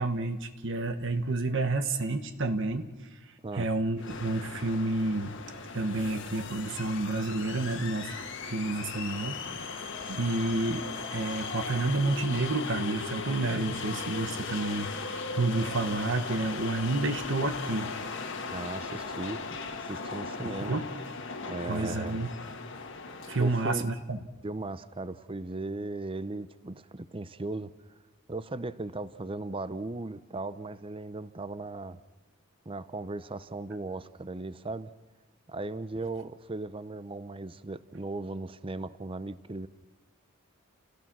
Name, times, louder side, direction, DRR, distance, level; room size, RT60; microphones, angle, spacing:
voice 1, 0.0-2.9 3.5-5.3 5.7-10.8 11.1-17.9 20.4-20.9 21.7-22.3 23.2-24.2, right 2 dB, 60° right, 8 dB, 1.2 m, -30 dB
sound 1, 4.0-23.8, left 4 dB, 60° left, 1.7 m, -38 dB
voice 2, 18.5-19.4 19.8-20.8 21.5-22.2 23.4-23.9 24.4-27.7 28.3-32.0 32.7-34.9 35.5-39.7, right 2 dB, 25° right, 14 dB, 0.7 m, -37 dB
30.0 x 17.0 x 6.1 m, 1.2 s
head